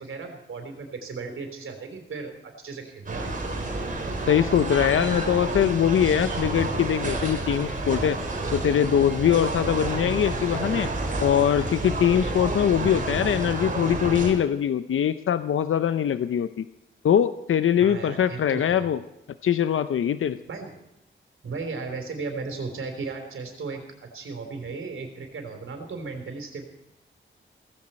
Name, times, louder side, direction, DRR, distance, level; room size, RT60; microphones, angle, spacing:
voice 1, 0.0-3.3 17.8-18.9 20.5-20.8 21.4-26.6, right 4 dB, 85° right, 4 dB, 3.7 m, -36 dB
sound 1, 3.1-14.3, right 2 dB, 40° right, 3.8 m, -29 dB
voice 2, 4.3-8.2 8.5-10.9 11.2-16.7 17.0-19.0 19.4-20.4, left 9 dB, 90° left, 12 dB, 0.7 m, -22 dB
17.0 x 16.0 x 4.4 m, 0.87 s
wide cardioid pair, 160°, 20 cm